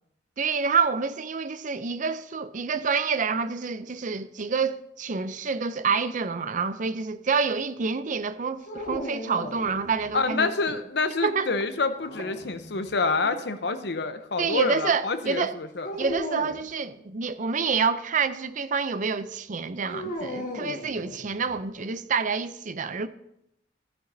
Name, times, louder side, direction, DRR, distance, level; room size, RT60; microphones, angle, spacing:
voice 1, 0.4-10.5 11.2-11.5 14.4-15.5 16.0-23.1, right 5 dB, 45° right, 0.5 m, -27 dB
sound 1, 8.7-10.2 11.9-13.0 15.8-16.6 19.9-21.5, left 1 dB, 50° left, 1.7 m, -36 dB
voice 2, 10.1-15.9, left 3 dB, 70° left, 0.8 m, -27 dB
14.0 x 9.7 x 2.7 m
head